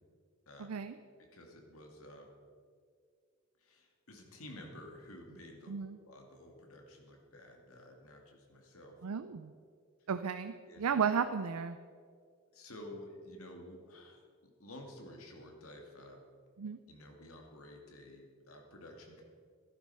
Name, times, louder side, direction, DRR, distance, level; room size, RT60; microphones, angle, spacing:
voice 1, 0.6-0.9 5.7-6.0 9.0-9.5 10.1-11.8 16.6-16.8, right 6 dB, 85° right, 9 dB, 0.5 m, -34 dB
voice 2, 1.2-2.3 3.6-5.7 6.0-9.0 10.7-10.9 12.5-16.2 16.9-19.2, left 1 dB, 75° left, 2 dB, 2.2 m, -52 dB
13.0 x 11.0 x 5.6 m, 2.1 s
head